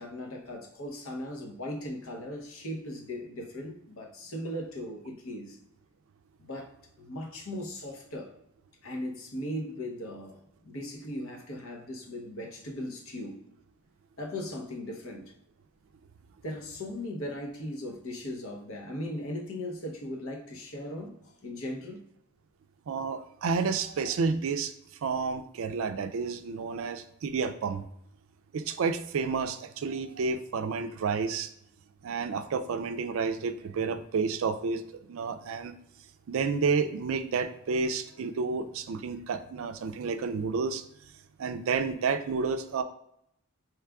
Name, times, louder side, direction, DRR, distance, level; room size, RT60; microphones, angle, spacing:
voice 1, 0.0-5.6 6.4-6.7 7.0-8.3 8.8-13.4 14.2-15.3 16.4-22.0, left 1 dB, 65° left, 1 dB, 0.8 m, -38 dB
voice 2, 22.9-24.7 25.0-27.8 28.5-31.5 32.0-34.8 35.1-35.7 36.3-40.8 41.4-42.8, right 5 dB, 65° right, 9 dB, 0.4 m, -30 dB
4.7 x 3.2 x 2.3 m, 0.74 s
head